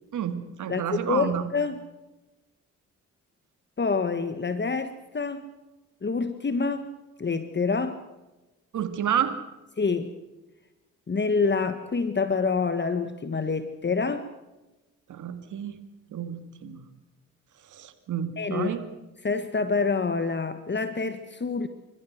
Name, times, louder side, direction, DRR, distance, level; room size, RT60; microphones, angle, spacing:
voice 1, 0.1-1.4 8.7-9.4 15.1-15.8 16.1-16.8 17.7-18.8, right 9 dB, 70° right, 9 dB, 2.2 m, -30 dB
voice 2, 0.7-1.8 3.8-5.5 6.0-6.9 7.2-8.0 9.8-10.1 11.1-14.3 18.4-18.7 19.2-21.7, left 4 dB, 35° left, 10 dB, 1.7 m, -27 dB
26.0 x 15.0 x 8.1 m, 1.0 s
supercardioid pair, 55°, 31 cm